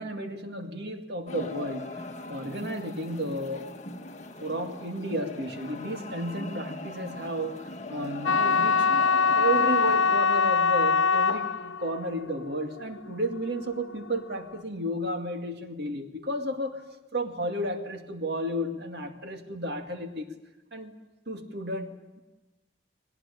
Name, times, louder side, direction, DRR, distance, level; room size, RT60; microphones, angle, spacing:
voice 1, 0.0-1.9 2.3-3.7 4.4-8.9 9.4-16.8 17.1-20.3 20.7-20.9 21.3-22.2, right 1 dB, 60° right, 5 dB, 2.2 m, -32 dB
sound 1, 1.3-10.2, left 2 dB, 35° left, 1.6 m, -40 dB
sound 2, 8.3-14.4, left 5 dB, 85° left, 0.7 m, -24 dB
21.5 x 19.0 x 10.0 m, 1.1 s
head